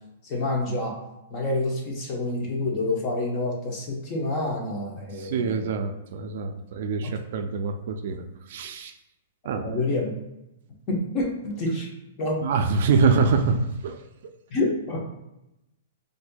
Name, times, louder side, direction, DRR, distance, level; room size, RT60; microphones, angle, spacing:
voice 1, 0.2-0.9 1.3-5.7 7.0-7.1 9.6-10.1 10.9-11.9 12.2-12.4 14.5-15.1, left 2 dB, 25° left, -1 dB, 0.8 m, -28 dB
voice 2, 5.2-8.2 8.5-8.9 9.4-9.7 12.4-14.0, right 4 dB, 50° right, 6 dB, 0.3 m, -25 dB
4.2 x 2.6 x 2.2 m, 0.92 s
hypercardioid pair, 165°, 0 cm